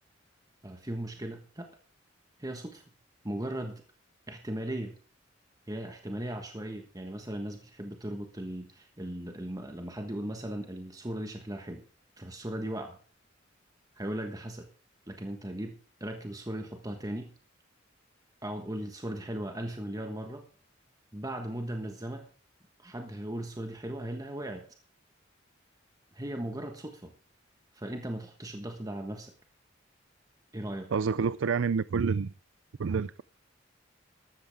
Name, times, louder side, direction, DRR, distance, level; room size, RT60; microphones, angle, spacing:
voice 1, 0.6-1.7 2.4-2.8 3.2-3.8 4.3-4.9 5.7-11.8 12.2-13.0 13.9-14.7 15.1-17.3 18.4-20.4 21.1-22.3 22.8-24.7 26.1-27.1 27.7-29.3 30.5-30.9, right 1 dB, 20° right, 1.4 m, -37 dB
voice 2, 30.9-32.3 32.8-33.2, right 5 dB, 80° right, 0.4 m, -28 dB
14.0 x 13.0 x 3.6 m
head